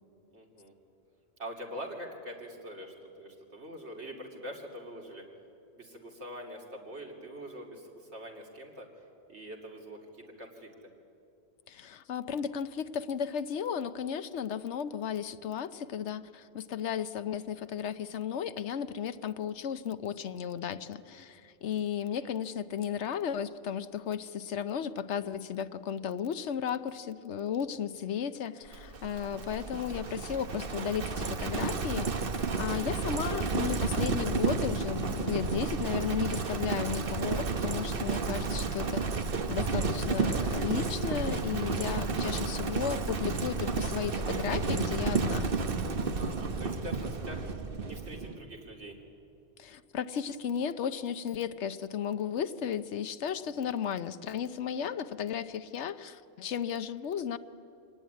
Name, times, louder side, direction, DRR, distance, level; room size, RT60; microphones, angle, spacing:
voice 1, 0.3-0.7 1.4-5.2 5.8-8.9 9.3-10.7 22.2-22.3 46.2-47.4 47.8-48.9, equal, 80° right, 0 dB, 3.2 m, -44 dB
voice 2, 11.7-45.5 49.6-57.4, left 8 dB, 90° left, 12 dB, 1.1 m, -34 dB
Livestock farm animals working animals, 28.7-48.4, right 4 dB, 55° right, 1.3 m, -31 dB
Female speech woman speaking, 38.1-41.3 41.6-43.2, left 2 dB, 15° left, 2.1 m, -51 dB
25.0 x 18.5 x 9.4 m, 2.7 s
omnidirectional pair, 1.1 m